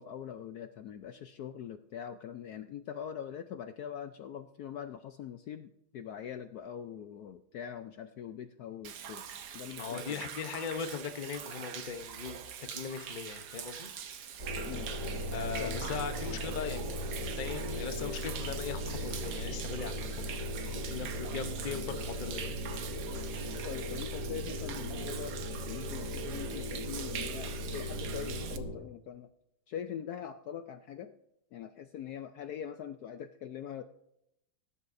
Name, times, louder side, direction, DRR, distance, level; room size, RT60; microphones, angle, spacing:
voice 1, 0.0-9.2 9.5-10.2 14.7-14.9 15.6-15.9 23.6-25.4 25.6-29.3 29.7-31.2 31.5-33.8, left 9 dB, 75° left, 9 dB, 0.9 m, -43 dB
Human voice / Rain / Stream, 8.8-28.6, right 8 dB, 60° right, 1.3 m, -43 dB
voice 2, 9.8-13.9 15.3-17.1 17.4-22.8, left 6 dB, 55° left, 8 dB, 0.5 m, -39 dB
sound 1, 14.4-28.7, equal, 45° right, 5.9 m, -38 dB
19.5 x 11.0 x 2.6 m, 0.80 s
omnidirectional pair, 2.2 m